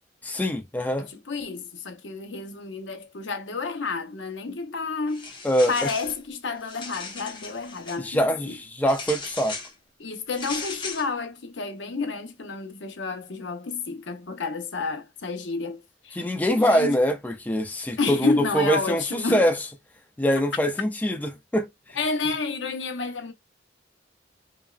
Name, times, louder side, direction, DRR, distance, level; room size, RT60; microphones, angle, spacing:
voice 1, 0.2-1.1 5.4-5.7 8.0-9.6 16.2-19.6 20.2-21.7, equal, 10° left, 0.4 m, -24 dB
voice 2, 1.0-5.3 5.7-8.2 8.5-8.6 10.0-17.0 18.0-19.4 22.0-23.3, left 4 dB, 75° left, 0.7 m, -30 dB
sound 1, 5.1-6.2 6.6-8.0 8.9-9.7 10.3-11.1, left 4 dB, 25° left, 1.0 m, -37 dB
5.1 x 2.2 x 2.4 m
head